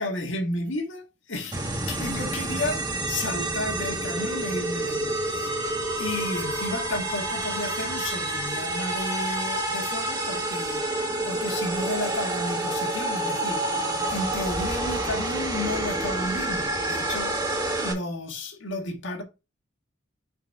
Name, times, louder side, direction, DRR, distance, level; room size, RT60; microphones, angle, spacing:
voice 1, 0.0-5.5 6.0-10.8 11.2-13.6 14.1-19.2, left 1 dB, 65° left, 1.6 m, -32 dB
sound 1, 1.5-17.9, right 1 dB, 20° right, 1.7 m, -28 dB
5.4 x 4.5 x 4.5 m
head